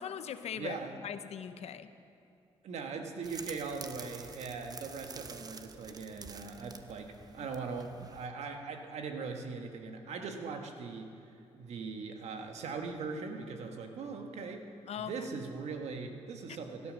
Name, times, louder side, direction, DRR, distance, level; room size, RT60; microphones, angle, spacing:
voice 1, 0.0-1.9 14.9-15.1 16.5-16.6, left 8 dB, 70° left, 11 dB, 0.7 m, -40 dB
voice 2, 0.6-0.9 2.6-11.1 11.5-14.7 15.0-16.9, right 4 dB, 80° right, 4 dB, 1.5 m, -40 dB
sound 1, 3.2-8.3, right 4 dB, 35° right, 0.7 m, -48 dB
16.5 x 11.0 x 6.3 m, 2.5 s
cardioid pair, 80°, 11 cm